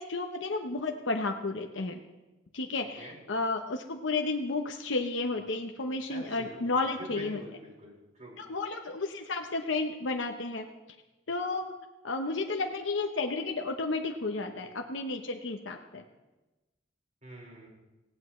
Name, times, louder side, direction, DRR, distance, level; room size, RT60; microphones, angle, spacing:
voice 1, 0.0-2.0 2.5-7.4 8.4-10.7 11.3-11.7 12.0-16.0, left 3 dB, 70° left, 3 dB, 0.9 m, -32 dB
voice 2, 6.1-6.6 7.0-8.4 17.2-17.7, right 1 dB, 40° right, -2 dB, 4.9 m, -46 dB
18.5 x 16.5 x 3.2 m, 1.1 s
head